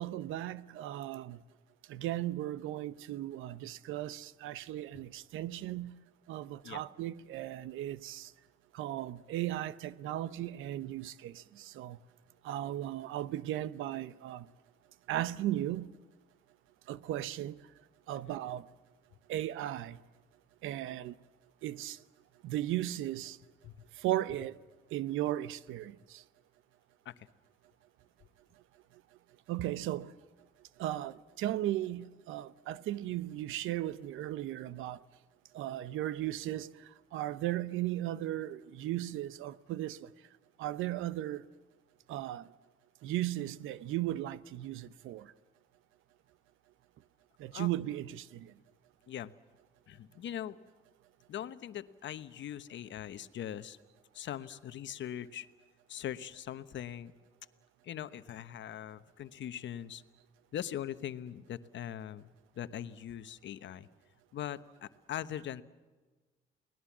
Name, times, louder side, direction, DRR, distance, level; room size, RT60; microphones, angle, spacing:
voice 1, 0.0-1.4 1.9-6.0 6.3-8.3 8.7-12.0 12.4-14.5 15.1-15.9 16.9-17.6 18.1-18.7 19.3-20.0 20.6-21.1 21.6-22.0 22.4-23.4 24.0-24.6 24.9-26.2 29.5-30.1 30.8-35.0 35.5-40.1 40.6-41.4 42.1-42.5 43.0-45.3 47.4-48.5, right 13 dB, 90° right, 0.8 m, -36 dB
voice 2, 49.9-50.6 51.3-53.8 54.1-55.5 55.9-57.1 57.8-60.0 60.5-62.3 62.5-63.9 64.3-65.6, left 10 dB, 70° left, 1.2 m, -41 dB
29.5 x 19.5 x 7.4 m
cardioid pair, 90°, 20 cm